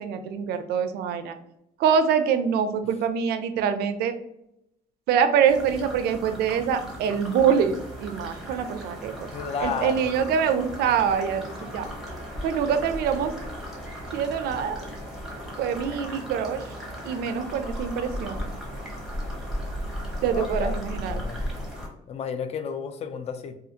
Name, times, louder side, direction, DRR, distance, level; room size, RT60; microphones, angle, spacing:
voice 1, 0.0-1.3 1.8-4.1 5.1-9.3 9.6-11.4 11.7-11.8 12.4-13.3 14.1-14.9 15.6-16.7 17.0-18.4 20.2-21.2, right 7 dB, 70° right, 9 dB, 0.4 m, -24 dB
sound 1, 5.5-21.9, equal, ahead, 0.9 m, -36 dB
voice 2, 9.3-10.1 20.3-20.8 21.1-21.6 22.1-23.5, left 6 dB, 40° left, 8 dB, 0.4 m, -32 dB
2.4 x 2.4 x 2.7 m, 0.79 s
cardioid pair, 110°, 17 cm